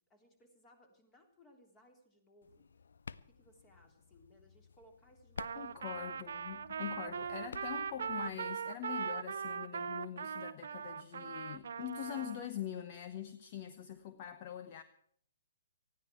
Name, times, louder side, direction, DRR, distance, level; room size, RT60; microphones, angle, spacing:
voice 1, 0.1-2.7 3.3-6.2 14.1-14.3, equal, 15° left, 3.4 m, -64 dB
sound 1, 2.4-8.4, left 5 dB, 60° left, 0.5 m, -53 dB
Trumpet, 5.4-12.5, right 6 dB, 55° right, 0.7 m, -40 dB
voice 2, 5.6-14.8, left 11 dB, 35° left, 0.9 m, -44 dB
20.0 x 14.5 x 4.6 m
figure-of-eight pair, 125°, 0 cm